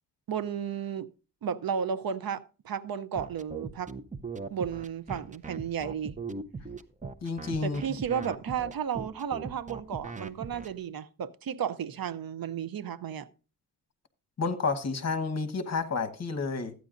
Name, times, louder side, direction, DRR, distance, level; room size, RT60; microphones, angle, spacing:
voice 1, 0.3-1.1 1.4-3.9 4.5-6.1 7.6-13.3, right 8 dB, 75° right, 0.7 m, -33 dB
sound 1, 3.1-10.7, right 4 dB, 20° right, 0.6 m, -39 dB
voice 2, 7.2-7.8 14.4-16.7, left 4 dB, 45° left, 1.2 m, -30 dB
14.5 x 9.4 x 2.5 m
wide cardioid pair, 100°, 36 cm